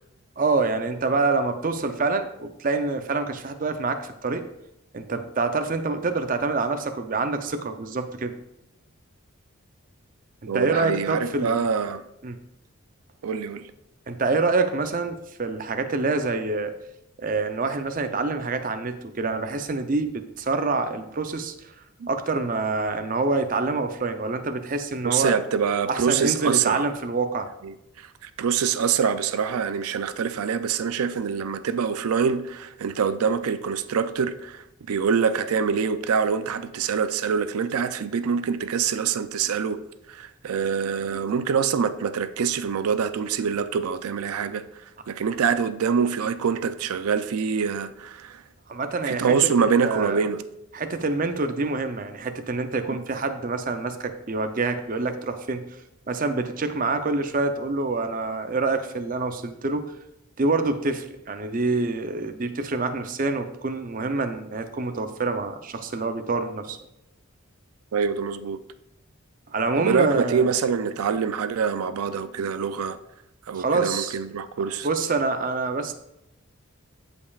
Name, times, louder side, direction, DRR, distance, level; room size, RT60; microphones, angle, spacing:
voice 1, 0.4-4.4 4.9-8.3 10.4-11.6 12.2-12.4 14.1-16.7 17.2-21.7 22.1-25.3 25.9-27.5 48.7-50.2 50.7-55.6 56.1-59.9 60.4-66.8 69.5-70.5 73.5-74.2 74.8-75.9, right 3 dB, 40° right, 0.5 m, -26 dB
voice 2, 10.5-12.0 13.2-13.7 22.0-22.1 25.0-26.9 27.6-39.8 40.1-44.6 45.1-48.4 49.1-50.4 67.9-68.6 69.8-73.0 73.5-74.9, right 6 dB, 90° right, 0.4 m, -25 dB
15.0 x 5.3 x 2.4 m
head